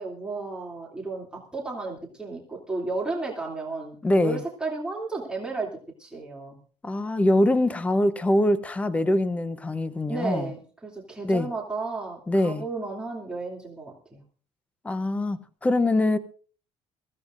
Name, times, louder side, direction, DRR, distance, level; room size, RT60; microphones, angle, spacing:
voice 1, 0.0-5.7 6.0-6.6 10.1-14.2, right 3 dB, 10° right, 2.8 m, -33 dB
voice 2, 4.0-4.4 6.8-10.5 11.2-11.5 12.3-12.6 14.8-16.2, left 1 dB, 10° left, 0.8 m, -23 dB
23.0 x 15.5 x 2.6 m
cardioid pair, 135°, 11 cm